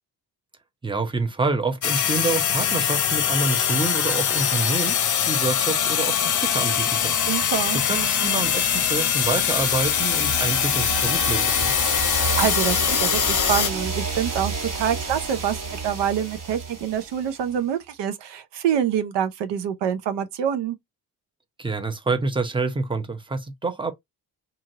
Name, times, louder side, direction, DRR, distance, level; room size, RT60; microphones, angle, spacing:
voice 1, 0.8-7.2 7.8-11.7 21.6-23.9, right 3 dB, 10° right, 0.8 m, -27 dB
sound 1, 1.8-13.7, left 8 dB, 45° left, 0.7 m, -22 dB
voice 2, 7.3-7.8 12.1-20.8, right 9 dB, 80° right, 0.7 m, -26 dB
sound 2, 8.9-17.6, right 4 dB, 50° right, 1.7 m, -31 dB
2.8 x 2.7 x 2.7 m
cardioid pair, 70°, 42 cm